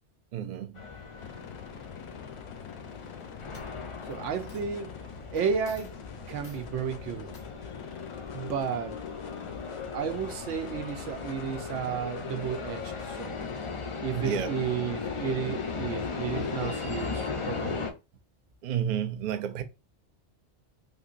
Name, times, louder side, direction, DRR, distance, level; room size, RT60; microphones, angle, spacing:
voice 1, 0.3-0.8 14.1-14.5 18.6-19.6, right 9 dB, 60° right, 0.5 m, -31 dB
sound 1, 0.8-17.9, left 5 dB, 50° left, 0.3 m, -37 dB
sound 2, 1.2-13.8, left 7 dB, 70° left, 0.8 m, -47 dB
Coin (dropping), 2.9-3.2 3.5-4.1 4.5-4.6 5.4-5.5 5.6-5.9 6.4-6.7 7.3-7.5, left 3 dB, 90° left, 1.6 m, -53 dB
voice 2, 4.1-5.0 5.3-5.9 6.3-7.3 8.3-9.0 9.9-13.5 14.0-17.9, right 7 dB, 90° right, 1.0 m, -33 dB
3.6 x 2.7 x 2.5 m
omnidirectional pair, 1.2 m